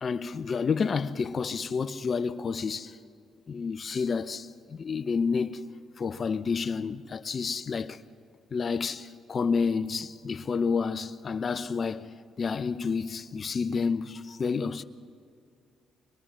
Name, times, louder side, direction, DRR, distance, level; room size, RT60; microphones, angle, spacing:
voice 1, 0.0-3.0 3.5-5.6 6.0-8.0 8.5-14.8, left 5 dB, 45° left, 0.7 m, -30 dB
24.5 x 21.5 x 6.2 m
cardioid pair, 90°, 0 cm